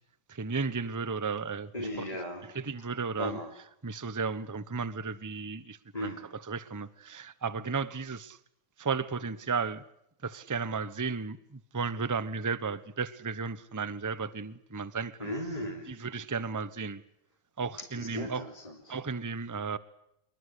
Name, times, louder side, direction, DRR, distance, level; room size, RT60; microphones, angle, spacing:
voice 1, 0.3-2.1 2.5-3.4 3.8-8.4 8.8-9.8 10.2-15.3 15.9-17.0 17.6-18.5 18.9-19.8, right 5 dB, 15° right, 0.5 m, -34 dB
voice 2, 1.7-2.5 3.2-3.5 5.9-6.3 15.2-15.9 17.8-19.0, left 1 dB, 15° left, 3.6 m, -37 dB
26.0 x 23.0 x 8.3 m
omnidirectional pair, 2.4 m